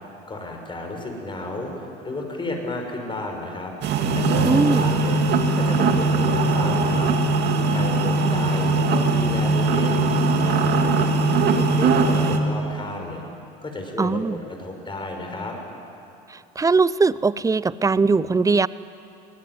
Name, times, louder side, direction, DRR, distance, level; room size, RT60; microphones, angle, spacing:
voice 1, 0.3-3.7 4.1-5.2 5.5-7.1 7.7-10.1 10.4-13.2 13.6-15.6, left 2 dB, 25° left, 3 dB, 5.8 m, -33 dB
sound 1, 3.8-12.4, right 3 dB, 55° right, 2.4 m, -20 dB
voice 2, 4.5-4.9 14.0-14.3 16.6-18.7, right 4 dB, 15° right, 18 dB, 0.6 m, -20 dB
23.0 x 17.5 x 9.6 m, 2.7 s
supercardioid pair, 85°, 21 cm